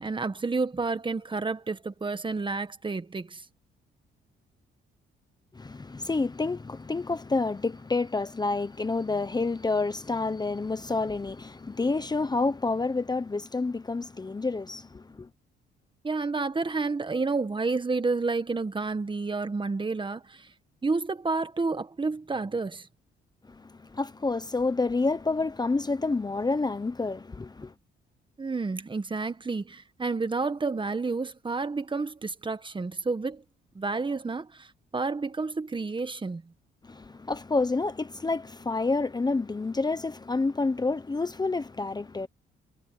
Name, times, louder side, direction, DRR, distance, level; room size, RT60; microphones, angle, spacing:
voice 1, 0.0-3.4 16.0-20.5 20.8-22.9 28.4-33.4 33.7-36.4, right 3 dB, 25° right, 1.7 m, -30 dB
voice 2, 5.5-15.3 23.5-27.7 36.8-42.3, left 3 dB, 20° left, 1.1 m, -29 dB
cardioid pair, 90°, 20 cm